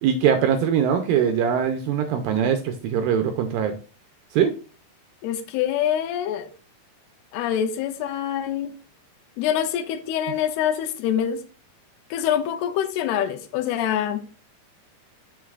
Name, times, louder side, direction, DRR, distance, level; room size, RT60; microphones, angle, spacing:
voice 1, 0.0-3.8 4.3-4.5, right 8 dB, 75° right, 6 dB, 2.1 m, -22 dB
voice 2, 5.2-6.5 7.3-8.7 9.4-11.4 12.1-14.2, left 10 dB, 85° left, 9 dB, 2.6 m, -25 dB
9.2 x 6.4 x 2.4 m, 0.36 s
omnidirectional pair, 4.7 m